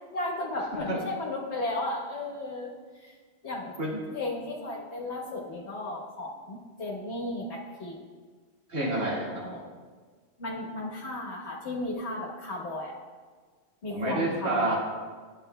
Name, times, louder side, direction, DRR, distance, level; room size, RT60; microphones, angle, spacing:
voice 1, 0.1-2.7 3.0-3.1 3.4-3.8 4.1-8.0 9.4-9.6 10.4-12.9 13.8-14.7, left 2 dB, 80° left, -2 dB, 1.5 m, -34 dB
voice 2, 8.7-9.6 13.9-14.8, right 2 dB, 80° right, -6 dB, 2.2 m, -29 dB
11.5 x 7.0 x 2.2 m, 1.5 s
omnidirectional pair, 1.1 m